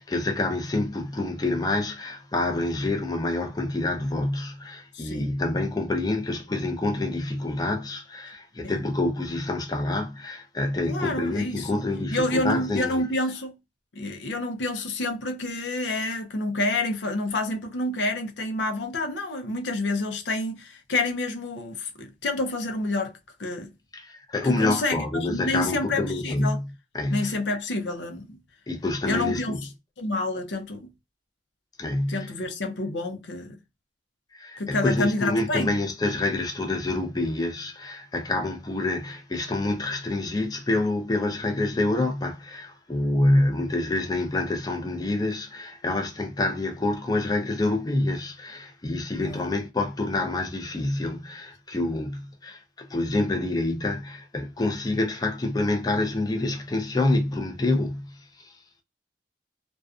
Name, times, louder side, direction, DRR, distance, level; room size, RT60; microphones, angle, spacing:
voice 1, 0.0-13.0 23.9-26.6 26.9-27.4 28.7-29.6 31.8-32.3 34.3-58.5, left 2 dB, 20° left, 0.5 m, -27 dB
voice 2, 4.9-5.3 8.6-8.8 10.9-11.8 12.1-13.6 14.0-23.7 24.4-26.6 27.1-28.4 29.0-29.6 30.0-30.9 32.1-33.6 34.6-35.7 49.1-49.5, left 2 dB, 90° left, 0.6 m, -28 dB
2.5 x 2.2 x 2.3 m
head